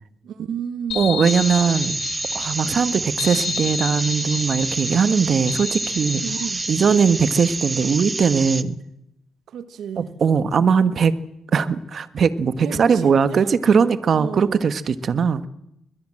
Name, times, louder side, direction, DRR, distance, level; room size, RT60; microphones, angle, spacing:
voice 1, 0.2-1.2 6.1-6.7 9.5-10.2 12.6-13.5 14.1-14.8, right 8 dB, 70° right, 1.3 m, -32 dB
sound 1, 0.9-7.6, left 8 dB, 75° left, 6.7 m, -32 dB
voice 2, 0.9-2.0 2.3-6.2 6.7-8.8 10.0-11.1 11.5-15.5, right 6 dB, 50° right, 1.4 m, -20 dB
sound 2, 1.2-8.6, right 3 dB, 25° right, 1.1 m, -28 dB
22.0 x 21.5 x 7.7 m
cardioid pair, 90°, 0 cm